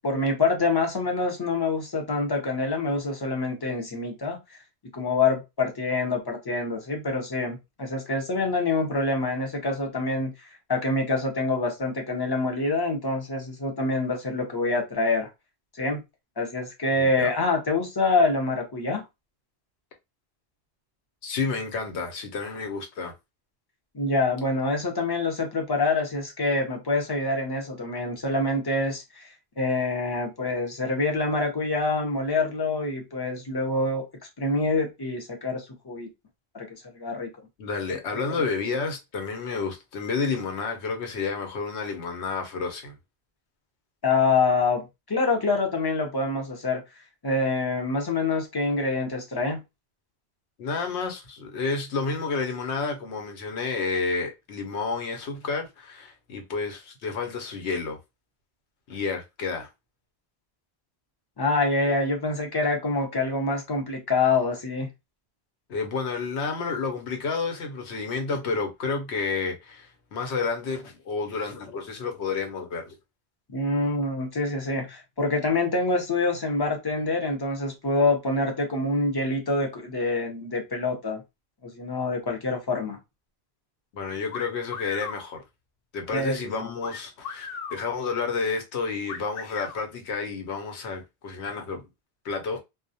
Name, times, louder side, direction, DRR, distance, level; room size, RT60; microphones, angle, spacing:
voice 1, 0.0-4.4 4.9-10.3 10.7-15.3 15.8-16.0 16.4-19.0 23.9-29.3 29.6-34.0 34.4-36.1 36.5-36.7 36.9-37.3 37.9-38.0 44.0-46.8 47.2-49.6 61.4-64.9 73.5-81.2 81.6-83.0 86.1-86.7, left 3 dB, 30° left, 0.5 m, -26 dB
voice 2, 16.9-17.3 21.2-23.1 37.6-42.9 50.6-58.0 58.9-59.7 65.7-72.9 83.9-85.4 85.9-91.8 92.2-92.6, left 4 dB, 85° left, 1.0 m, -30 dB
sound 1, 84.3-85.2 86.8-87.8 89.1-89.8, left 6 dB, 65° left, 0.7 m, -36 dB
2.3 x 2.0 x 2.6 m
omnidirectional pair, 1.1 m